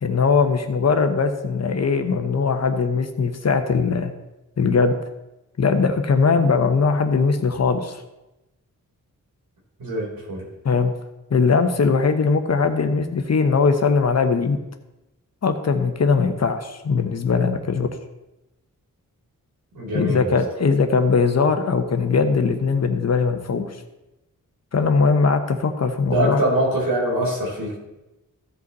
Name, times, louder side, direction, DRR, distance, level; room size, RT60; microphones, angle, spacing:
voice 1, 0.0-4.1 4.6-5.0 5.6-8.0 10.6-10.9 11.3-14.6 15.4-17.9 19.9-23.8 24.7-26.4, left 4 dB, 50° left, 7 dB, 1.0 m, -20 dB
voice 2, 9.8-10.4 19.7-20.3 26.0-27.8, right 1 dB, 85° right, -4 dB, 3.9 m, -23 dB
15.0 x 5.2 x 4.1 m, 0.98 s
wide cardioid pair, 105°, 33 cm